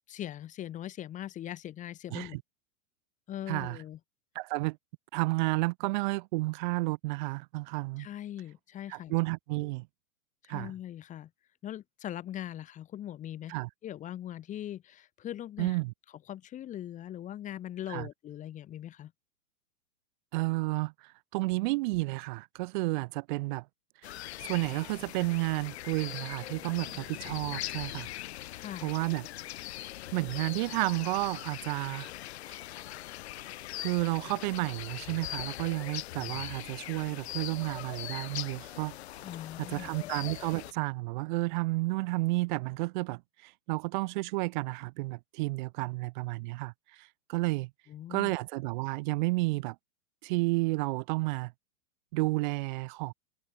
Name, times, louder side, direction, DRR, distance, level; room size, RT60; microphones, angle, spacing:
voice 1, 0.0-2.4 3.3-4.0 8.0-9.1 10.4-11.3 11.6-13.6 13.8-15.8 16.3-19.1 28.5-28.9 39.2-39.9 47.9-48.3, left 11 dB, 20° left, 6.1 m, -41 dB
voice 2, 2.1-2.4 3.5-3.8 4.4-4.8 5.1-8.1 8.9-9.9 10.5-10.7 13.5-13.7 15.6-15.9 17.9-18.1 20.3-23.7 24.4-28.1 28.8-29.3 30.1-32.1 32.5-32.6 33.8-38.9 39.6-47.7 48.1-49.8 50.2-51.5 52.1-53.1, right 23 dB, 35° right, 1.9 m, -31 dB
sound 1, 24.0-40.7, left 15 dB, 50° left, 1.6 m, -41 dB
supercardioid pair, 170°, 41 cm